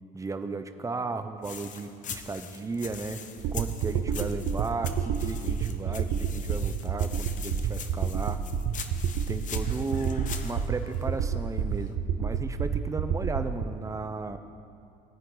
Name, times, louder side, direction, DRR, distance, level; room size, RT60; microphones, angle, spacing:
voice 1, 0.1-3.2 3.5-8.4 9.3-14.4, right 3 dB, 20° right, 8 dB, 0.8 m, -35 dB
sound 1, 1.4-11.9, left 7 dB, 50° left, 0.9 m, -43 dB
sound 2, 3.4-13.6, right 7 dB, 80° right, 0.8 m, -30 dB
18.0 x 10.0 x 4.0 m, 2.4 s
cardioid pair, 110°, 17 cm